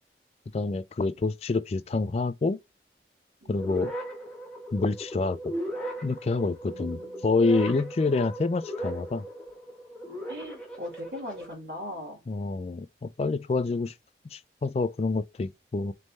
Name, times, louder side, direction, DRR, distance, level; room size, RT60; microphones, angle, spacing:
voice 1, 0.5-2.6 3.5-3.9 4.7-5.4 6.0-9.2 12.3-13.9 14.3-15.9, left 3 dB, 35° left, 0.3 m, -27 dB
sound 1, 3.6-11.5, right 1 dB, 5° left, 1.3 m, -37 dB
voice 2, 6.7-7.7 10.3-12.2, left 1 dB, 60° right, 2.0 m, -40 dB
3.4 x 3.1 x 4.0 m
head